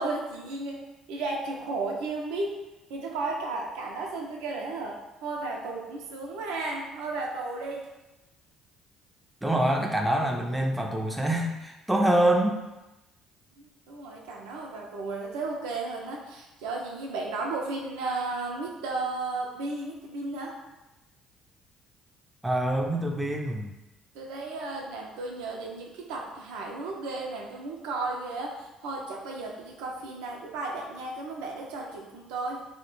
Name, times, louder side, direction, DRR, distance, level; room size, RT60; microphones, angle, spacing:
voice 1, 0.0-2.6 2.9-7.9 13.9-20.6 24.1-32.7, right 3 dB, 80° right, -1 dB, 0.4 m, -34 dB
voice 2, 9.4-12.6 22.4-23.7, right 1 dB, 10° right, 1 dB, 0.4 m, -25 dB
2.1 x 2.1 x 3.0 m, 1.0 s
hypercardioid pair, 65°, 0 cm